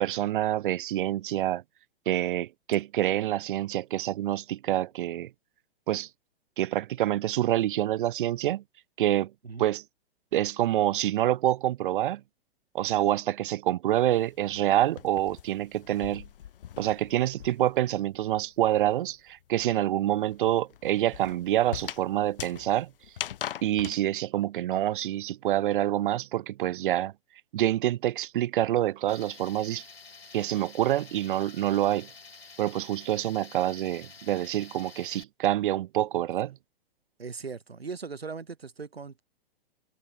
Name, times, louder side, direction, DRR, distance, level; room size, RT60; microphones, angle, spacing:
voice 1, 0.0-1.6 2.1-5.3 5.9-6.1 6.6-8.6 9.0-9.3 9.6-9.8 10.3-12.2 12.7-16.3 16.8-22.9 23.6-27.1 27.5-29.8 30.3-32.1 32.6-36.6, right 13 dB, 60° right, 0.4 m, -27 dB
sound 1, 14.1-17.9 18.1-24.0, left 10 dB, 65° left, 1.2 m, -41 dB
Tools, 29.1-35.2, left 4 dB, 85° left, 7.1 m, -49 dB
voice 2, 37.2-39.2, right 5 dB, 90° right, 2.2 m, -39 dB
hypercardioid pair, 120°, 30 cm